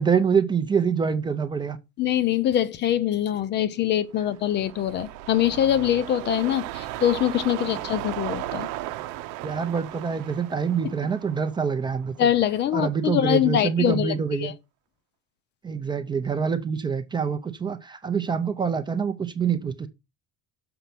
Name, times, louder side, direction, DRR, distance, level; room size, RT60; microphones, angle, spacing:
voice 1, 0.0-1.8 9.4-12.3 12.7-14.5 15.6-19.9, right 6 dB, 15° right, 0.5 m, -25 dB
voice 2, 2.0-8.7 12.2-14.5, left 11 dB, 35° left, 0.6 m, -23 dB
sound 1, 4.2-12.6 13.0-13.1, right 15 dB, 75° right, 0.9 m, -36 dB
6.8 x 5.1 x 5.9 m
cardioid pair, 175°, 31 cm